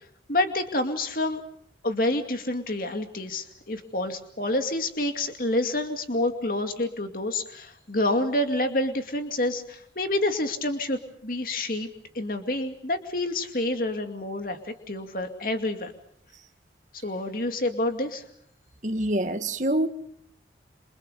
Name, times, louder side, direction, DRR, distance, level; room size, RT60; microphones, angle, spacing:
voice 1, 0.3-1.4 1.8-11.9 12.1-15.9 17.0-18.3, left 1 dB, 50° left, 2.4 m, -28 dB
voice 2, 18.8-19.9, right 1 dB, 40° right, 1.8 m, -25 dB
28.0 x 28.0 x 5.3 m
head